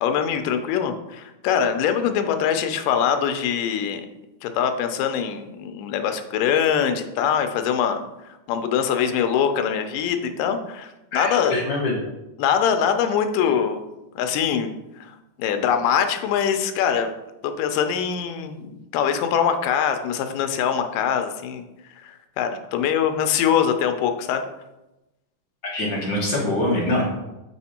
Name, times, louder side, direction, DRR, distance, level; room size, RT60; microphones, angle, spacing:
voice 1, 0.0-4.1 4.4-8.0 8.5-11.6 12.4-13.8 14.2-17.1 17.4-21.7 22.0-24.5, left 8 dB, 85° left, 7 dB, 2.3 m, -23 dB
voice 2, 11.1-12.0 25.6-27.0, left 1 dB, 55° left, -3 dB, 1.3 m, -24 dB
7.9 x 4.4 x 4.3 m, 0.96 s
omnidirectional pair, 3.7 m